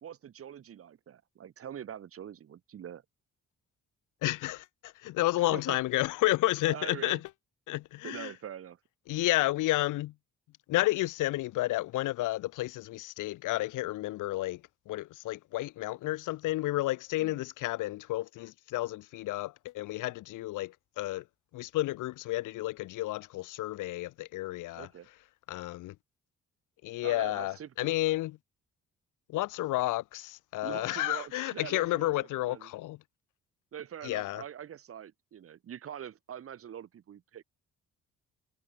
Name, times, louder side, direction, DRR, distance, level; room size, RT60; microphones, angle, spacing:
voice 1, 0.0-3.0 5.5-5.8 6.7-7.2 8.0-8.8 17.2-17.4 24.8-25.1 27.0-27.9 30.6-32.7 33.7-37.4, right 9 dB, 50° right, 1.1 m, -44 dB
voice 2, 4.2-7.2 7.7-8.3 9.1-10.1 10.7-21.2 21.5-24.9 25.5-25.9 26.8-28.4 29.3-33.0 34.0-34.4, left 17 dB, 85° left, 1.1 m, -31 dB
cardioid pair, 90°, 30 cm